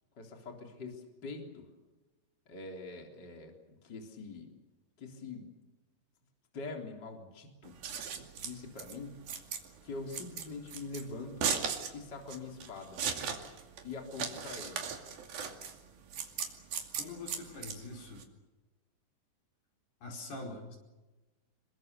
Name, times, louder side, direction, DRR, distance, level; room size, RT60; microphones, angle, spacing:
voice 1, 0.2-1.7 2.5-4.5 5.0-5.5 6.5-7.8 8.4-9.3 9.8-11.6 11.9-13.0 13.8-14.8, left 3 dB, 25° left, 2 dB, 3.9 m, -44 dB
Scissors, 7.6-18.2, right 7 dB, 65° right, 4.2 m, -38 dB
voice 2, 17.0-18.3 20.0-20.8, left 2 dB, 70° left, 1 dB, 6.8 m, -44 dB
27.0 x 23.0 x 6.8 m, 1.1 s
omnidirectional pair, 4.7 m